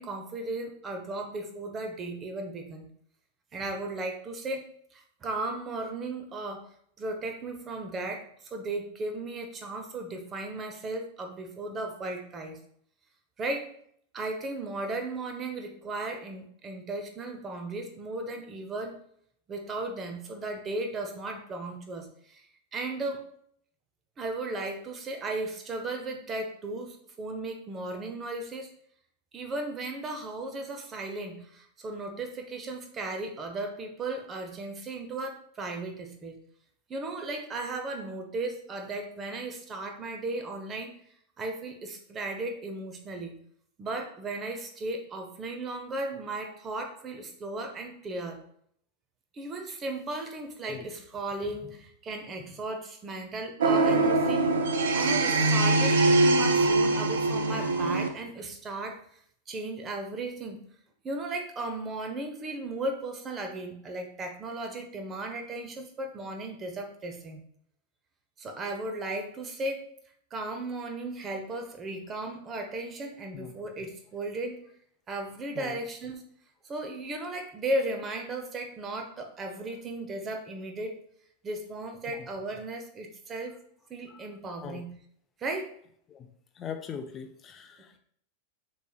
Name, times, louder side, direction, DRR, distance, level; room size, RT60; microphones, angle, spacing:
voice 1, 0.0-2.9 3.5-4.7 4.9-6.7 7.0-12.6 13.4-13.7 14.1-19.0 19.5-22.4 22.7-23.2 24.2-28.7 29.3-36.4 36.9-40.9 41.4-43.4 43.8-48.4 49.3-54.5 54.9-59.0 59.5-60.6 61.0-67.4 68.4-69.8 70.3-74.6 75.1-76.2 76.6-80.9 81.4-83.6 83.9-85.0 85.4-85.7, right 2 dB, 25° right, 4 dB, 0.8 m, -36 dB
sound 1, 53.6-58.1, right 2 dB, 60° right, 0.6 m, -23 dB
voice 2, 86.6-88.0, left 7 dB, 25° left, 6 dB, 0.6 m, -41 dB
6.5 x 3.2 x 2.3 m, 0.65 s
figure-of-eight pair, 90°, 0 cm